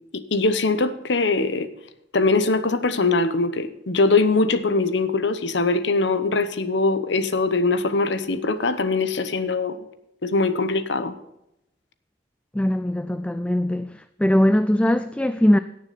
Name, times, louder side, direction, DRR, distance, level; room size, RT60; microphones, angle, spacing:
voice 1, 0.1-1.7 2.1-9.8 10.2-11.1, left 3 dB, 75° left, 0.9 m, -22 dB
voice 2, 12.5-15.6, left 1 dB, 5° left, 0.3 m, -21 dB
17.0 x 6.8 x 4.1 m
head